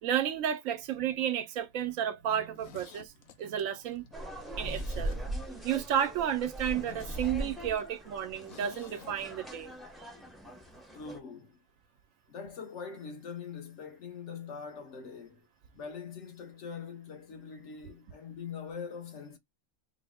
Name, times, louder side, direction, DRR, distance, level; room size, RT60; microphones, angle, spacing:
voice 1, 0.0-3.1 3.4-4.1 4.6-5.2 5.6-9.7 10.0-10.1, right 9 dB, 85° right, 1.0 m, -32 dB
Zipper (clothing), 2.3-5.6 5.9-6.0 6.4-6.5 6.7-9.2 9.4-9.5, left 9 dB, 85° left, 1.1 m, -52 dB
sound 1, 4.1-11.2, right 1 dB, ahead, 0.5 m, -40 dB
voice 2, 10.9-11.6 12.3-15.5 15.7-19.4, left 6 dB, 65° left, 1.1 m, -43 dB
4.0 x 2.1 x 3.4 m
omnidirectional pair, 1.4 m